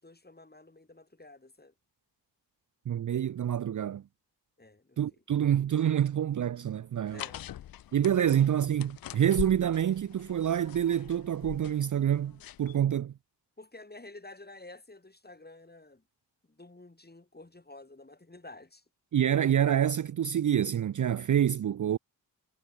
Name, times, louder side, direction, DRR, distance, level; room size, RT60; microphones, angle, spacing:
voice 1, 0.0-1.7 4.6-5.0 7.1-7.5 8.2-8.4 13.6-16.0 16.5-18.8, left 2 dB, 20° left, 4.3 m, -50 dB
voice 2, 2.9-4.0 5.0-7.2 7.9-13.1 19.1-22.0, right 10 dB, 45° right, 0.6 m, -27 dB
sound 1, 7.1-12.8, left 12 dB, 55° left, 0.5 m, -43 dB
cardioid pair, 50°, 43 cm